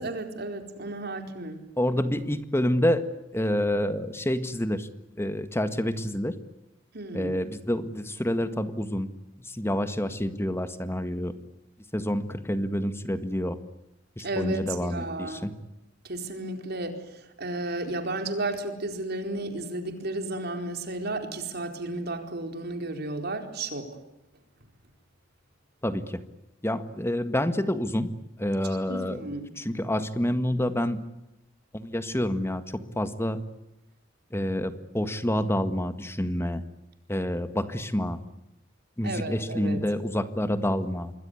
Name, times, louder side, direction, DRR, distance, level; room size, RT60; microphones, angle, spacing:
voice 1, 0.0-1.6 6.9-7.4 14.2-15.5 16.0-23.9 28.9-29.5 39.0-39.8, right 2 dB, 55° right, 6 dB, 4.5 m, -33 dB
voice 2, 1.8-3.0 3.3-4.9 5.2-6.3 7.1-9.1 9.4-11.3 11.9-13.6 14.2-15.5 25.8-26.2 26.6-28.1 28.4-29.2 29.6-31.0 31.7-33.4 34.3-36.6 37.1-38.2 39.0-41.1, left 1 dB, 15° left, 10 dB, 1.8 m, -28 dB
27.0 x 22.0 x 9.8 m, 0.90 s
head